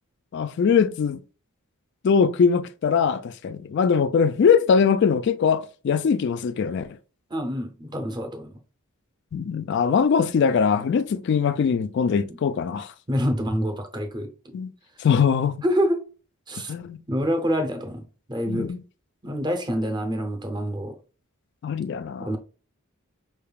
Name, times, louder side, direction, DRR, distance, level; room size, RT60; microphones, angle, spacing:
voice 1, 0.3-1.2 2.0-7.0 9.3-12.9 14.5-14.7 15.0-15.5 16.7-17.0 18.5-18.8 21.6-22.3, left 6 dB, 55° left, 0.3 m, -21 dB
voice 2, 7.3-8.6 12.3-12.4 13.1-14.6 15.6-16.0 16.5-16.7 17.1-18.7 19.2-21.0 22.2-22.4, equal, 20° right, 0.7 m, -27 dB
5.6 x 3.5 x 2.3 m
head